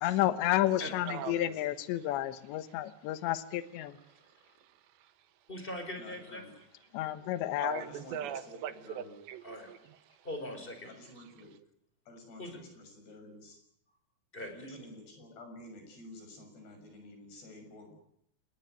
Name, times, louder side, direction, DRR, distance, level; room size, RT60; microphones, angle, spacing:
voice 1, 0.0-3.9 6.9-7.8, left 14 dB, 75° left, 3.4 m, -31 dB
voice 2, 0.7-1.6 6.0-6.5 7.8-9.2 10.9-11.5 12.1-13.6 13.9-14.0 14.4-17.9, left 1 dB, 60° left, 8.4 m, -51 dB
voice 3, 4.4-5.5 7.2-7.3 7.6-10.3 11.2-11.3, right 9 dB, 75° right, 3.5 m, -42 dB
voice 4, 5.5-6.4 9.4-9.7 10.2-10.9 12.4-12.6 14.3-14.8, left 1 dB, 10° left, 5.0 m, -41 dB
29.5 x 18.5 x 9.4 m
omnidirectional pair, 5.3 m